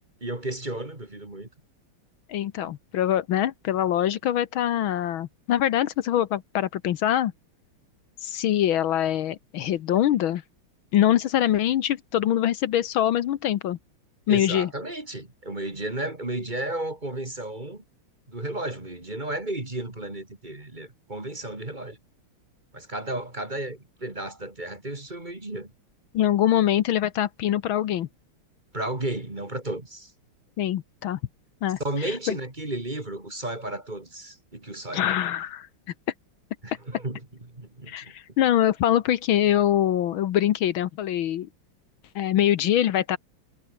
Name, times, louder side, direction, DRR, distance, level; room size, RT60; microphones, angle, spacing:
voice 1, 0.2-1.5 14.3-17.8 18.3-22.0 22.7-25.7 28.7-30.1 31.8-35.2 36.6-37.2 37.5-37.9, right 1 dB, 20° right, 2.9 m, -33 dB
voice 2, 2.3-7.3 8.2-10.4 10.9-13.8 14.3-14.7 26.1-28.1 30.6-31.2 31.6-32.4 34.9-35.7 37.9-41.5 42.1-43.2, left 11 dB, 75° left, 1.7 m, -24 dB
omnidirectional pair, 2.3 m